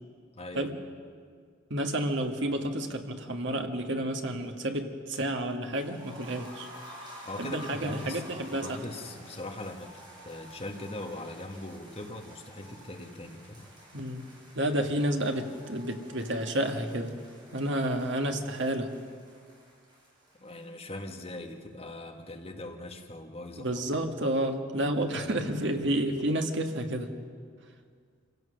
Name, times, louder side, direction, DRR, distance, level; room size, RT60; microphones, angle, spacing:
voice 1, 0.3-0.7 7.2-9.9 10.2-13.7 20.4-23.8, left 1 dB, 30° left, 3 dB, 1.5 m, -41 dB
voice 2, 1.7-6.7 7.4-8.8 13.9-14.2 14.5-17.2 17.5-18.9 23.6-27.1, right 1 dB, 60° right, 5 dB, 1.6 m, -30 dB
sound 1, 5.7-21.6 21.9-22.0 22.3-22.4, equal, 25° right, 5.4 m, -50 dB
25.5 x 16.5 x 6.5 m, 2.1 s
head